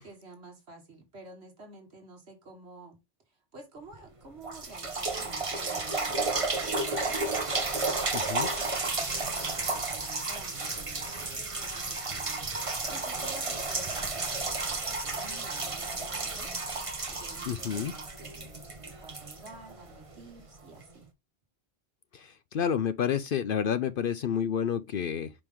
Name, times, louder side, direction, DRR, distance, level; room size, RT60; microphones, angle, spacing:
voice 1, 0.0-3.0 3.3-12.5 12.9-16.5 17.1-21.1, right 3 dB, 60° right, 1.7 m, -50 dB
sound 1, 3.9-4.0 4.4-20.2 20.8-20.9, right 3 dB, 30° right, 1.1 m, -32 dB
voice 2, 17.5-17.9 22.1-25.3, left 8 dB, 60° left, 0.6 m, -29 dB
5.9 x 5.0 x 3.5 m
omnidirectional pair, 1.3 m